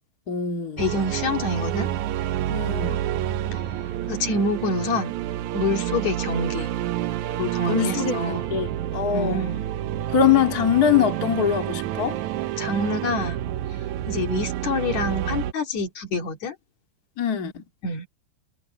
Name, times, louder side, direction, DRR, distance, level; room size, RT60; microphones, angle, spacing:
voice 1, 0.3-0.8 2.5-3.0 7.6-9.4 10.1-12.2 17.2-17.6, left 8 dB, 35° left, 1.8 m, -23 dB
voice 2, 0.8-1.9 3.5-3.6 4.1-5.1 5.5-6.7 7.4-8.5 9.1-9.7 12.6-13.4 14.1-16.6 17.8-18.1, left 2 dB, 50° left, 3.3 m, -27 dB
sound 1, 0.8-15.5, right 12 dB, 75° right, 1.8 m, -29 dB
omnidirectional pair, 4.4 m